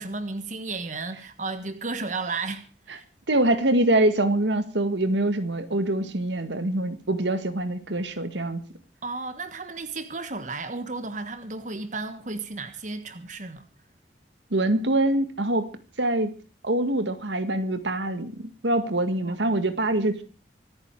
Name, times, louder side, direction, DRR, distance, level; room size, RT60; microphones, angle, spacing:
voice 1, 0.0-3.0 9.0-13.7 19.2-19.4, right 3 dB, 45° right, 1.5 m, -33 dB
voice 2, 3.3-8.6 14.5-15.7 16.0-16.3 16.6-20.2, right 1 dB, 90° right, 2.0 m, -24 dB
25.0 x 9.8 x 4.8 m
head